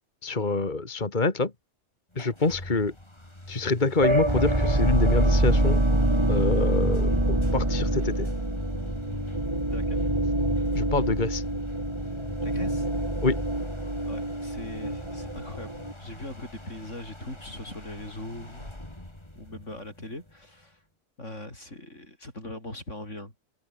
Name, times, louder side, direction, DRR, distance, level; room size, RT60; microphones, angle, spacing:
voice 1, 0.2-1.5 2.2-2.9 3.5-5.8 6.3-8.3 10.7-11.4 13.2-13.4, left 3 dB, 40° left, 2.2 m, -26 dB
sound 1, 2.1-20.6, left 1 dB, 25° left, 3.9 m, -41 dB
sound 2, 4.0-15.9, right 1 dB, 25° right, 3.9 m, -25 dB
voice 2, 9.7-10.0 12.4-12.9 14.1-15.7 16.0-18.7 19.4-20.8 21.2-23.3, left 1 dB, 80° left, 7.7 m, -40 dB
open air
omnidirectional pair, 1.2 m